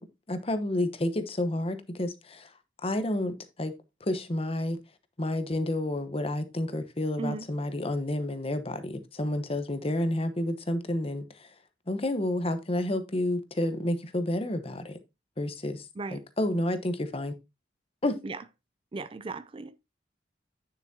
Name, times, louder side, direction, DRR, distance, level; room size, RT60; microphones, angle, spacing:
voice 1, 0.3-2.5 2.8-3.7 4.0-4.8 5.2-11.5 11.9-15.0 15.4-15.9 16.1-17.3 18.0-18.2, left 1 dB, 35° left, 1.0 m, -30 dB
voice 2, 18.9-19.8, right 3 dB, 30° right, 0.4 m, -36 dB
9.1 x 7.1 x 2.7 m
head